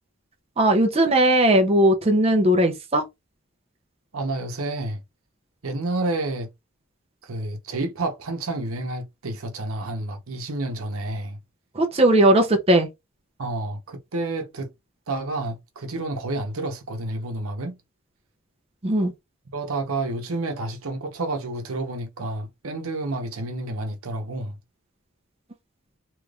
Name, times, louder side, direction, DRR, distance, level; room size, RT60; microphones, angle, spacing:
voice 1, 0.6-3.0 11.7-12.9 18.8-19.1, right 1 dB, 30° right, 0.6 m, -18 dB
voice 2, 4.1-5.0 5.6-6.5 7.2-11.4 13.4-14.7 15.1-17.8 19.5-24.6, right 2 dB, 85° right, 0.9 m, -30 dB
3.3 x 3.0 x 2.4 m
head